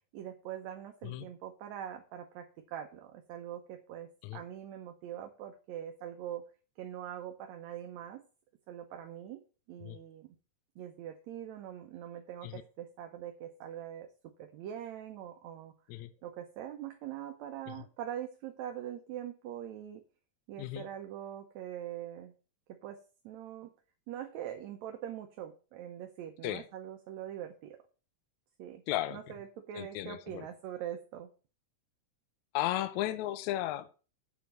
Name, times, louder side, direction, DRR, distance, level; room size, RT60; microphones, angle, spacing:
voice 1, 0.1-6.5 6.8-8.2 8.7-9.4 9.7-10.4 10.8-14.1 14.4-15.7 16.2-20.0 20.5-22.3 22.7-23.7 24.1-27.8 28.6-28.8 29.1-31.3, right 10 dB, 70° right, 2.0 m, -43 dB
voice 2, 28.9-29.2 29.7-30.5 32.5-33.9, left 14 dB, 75° left, 1.9 m, -34 dB
8.1 x 5.2 x 6.7 m
omnidirectional pair, 3.5 m